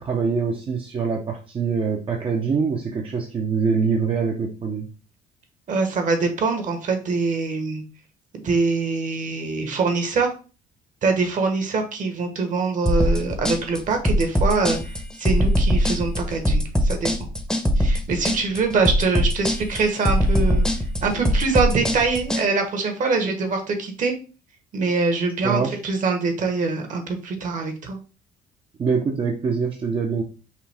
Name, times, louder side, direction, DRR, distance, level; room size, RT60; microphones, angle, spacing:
voice 1, 0.0-4.9 25.4-25.8 28.8-30.2, right 5 dB, 30° right, 1 dB, 0.7 m, -24 dB
voice 2, 5.7-7.8 8.3-10.3 11.0-14.8 15.2-17.1 17.8-20.7 21.0-24.1 24.7-28.0, right 4 dB, 50° right, 5 dB, 1.3 m, -24 dB
sound 1, 12.9-22.4, equal, 5° left, 0.8 m, -21 dB
5.7 x 2.3 x 3.5 m, 0.34 s
cardioid pair, 110°, 17 cm